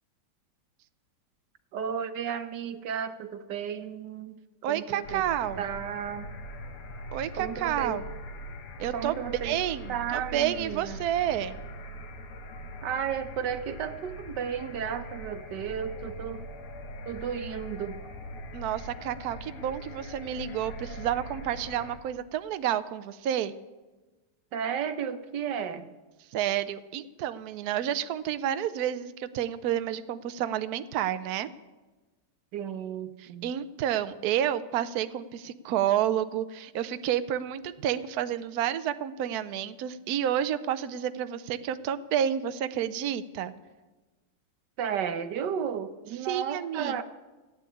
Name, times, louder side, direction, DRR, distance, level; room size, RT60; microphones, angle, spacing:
voice 1, 1.7-4.4 4.6-5.3 5.6-6.3 7.3-8.0 8.9-9.6 9.9-11.0 12.8-16.5 17.1-18.0 24.5-25.9 32.5-33.5 44.8-47.0, right 8 dB, 60° right, 9 dB, 1.4 m, -33 dB
voice 2, 4.6-5.7 7.1-8.0 8.8-11.6 18.5-23.5 26.3-31.5 33.2-43.5 46.2-47.0, right 10 dB, 80° right, 12 dB, 0.8 m, -30 dB
sound 1, 5.0-22.0, equal, 80° left, 2.0 m, -42 dB
15.0 x 9.2 x 8.5 m, 1.2 s
omnidirectional pair, 2.3 m